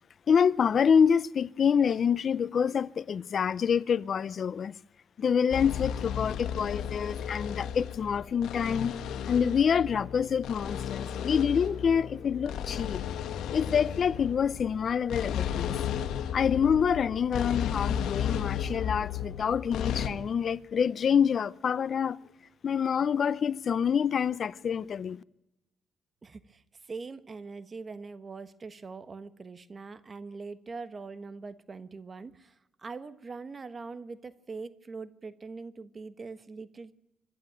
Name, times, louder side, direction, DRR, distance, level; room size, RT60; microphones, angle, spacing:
voice 1, 0.3-4.8 5.2-9.0 9.3-13.0 13.5-15.8 16.3-22.2 22.6-25.2, left 7 dB, 50° left, 0.6 m, -26 dB
sound 1, 5.5-20.1, left 9 dB, 80° left, 1.5 m, -34 dB
voice 2, 26.2-36.9, right 4 dB, 35° right, 1.3 m, -42 dB
25.5 x 11.5 x 9.0 m
cardioid pair, 90°, 0 cm